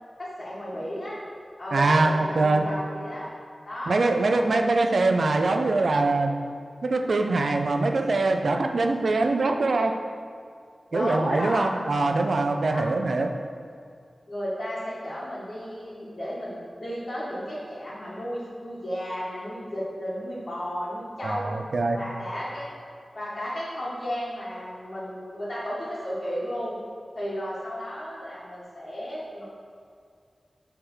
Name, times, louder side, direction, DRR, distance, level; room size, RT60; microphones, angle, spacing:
voice 1, 0.2-1.2 1.6-3.3 3.6-4.9 10.9-11.8 12.7-12.9 14.3-21.5 21.9-22.7 23.1-26.8 27.1-29.4, equal, 45° left, -10 dB, 1.8 m, -33 dB
voice 2, 1.7-2.6 3.9-6.3 6.8-10.0 10.9-13.3 21.2-22.0, right 3 dB, 75° right, 5 dB, 0.5 m, -23 dB
6.5 x 3.6 x 6.2 m, 2.2 s
cardioid pair, 45°, 0 cm